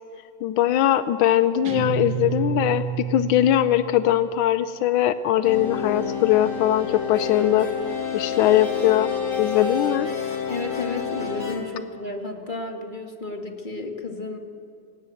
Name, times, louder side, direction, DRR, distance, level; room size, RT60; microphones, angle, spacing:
voice 1, 0.4-7.7 8.1-9.1 9.4-10.1, left 12 dB, 85° left, 12 dB, 1.5 m, -21 dB
Guitar, 1.6-4.2, right 11 dB, 65° right, 2.3 m, -30 dB
sound 1, 5.4-11.6, left 7 dB, 40° left, 4.0 m, -29 dB
voice 2, 10.5-14.4, left 2 dB, 25° left, 4 dB, 1.9 m, -32 dB
26.5 x 17.0 x 7.8 m, 2.4 s
omnidirectional pair, 2.2 m